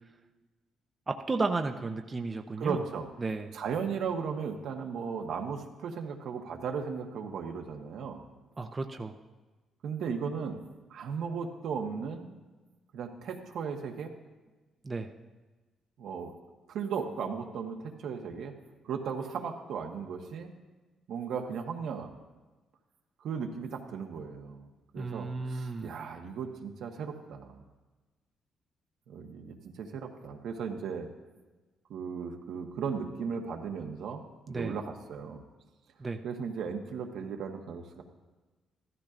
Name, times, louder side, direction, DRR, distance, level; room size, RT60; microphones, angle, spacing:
voice 1, 1.1-2.8 3.2-3.5 8.6-9.2 14.8-15.1 24.9-25.9 34.5-34.8 36.0-36.2, right 3 dB, 30° right, 5 dB, 0.6 m, -33 dB
voice 2, 2.6-3.1 3.5-8.2 9.8-10.6 10.9-12.3 12.9-14.1 16.0-16.3 16.7-18.6 18.8-20.5 21.1-22.1 23.2-24.7 24.9-27.6 29.1-31.1 31.9-35.4 36.2-38.0, right 6 dB, 75° right, 3 dB, 1.1 m, -36 dB
14.5 x 13.5 x 2.5 m, 1.2 s
cardioid pair, 90°, 0 cm